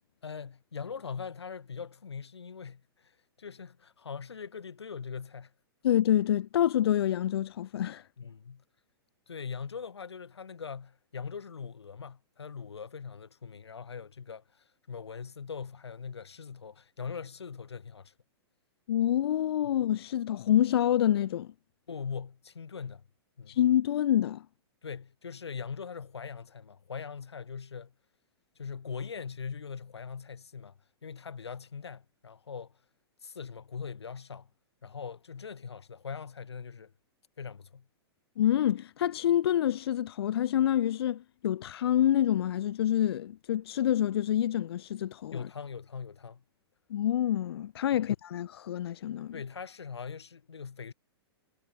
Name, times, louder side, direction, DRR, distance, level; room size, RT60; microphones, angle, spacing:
voice 1, 0.2-5.5 8.2-8.6 9.3-18.1 21.9-23.1 23.4-23.6 24.8-27.9 28.6-32.8 33.2-34.5 34.8-36.9 37.4-37.9 45.3-46.4 47.9-48.1 49.3-50.9, left 6 dB, 85° left, 0.8 m, -41 dB
voice 2, 5.8-8.1 18.9-21.5 23.5-24.5 38.4-45.5 46.9-49.4, left 11 dB, 70° left, 0.4 m, -27 dB
hypercardioid pair, 110°, 14 cm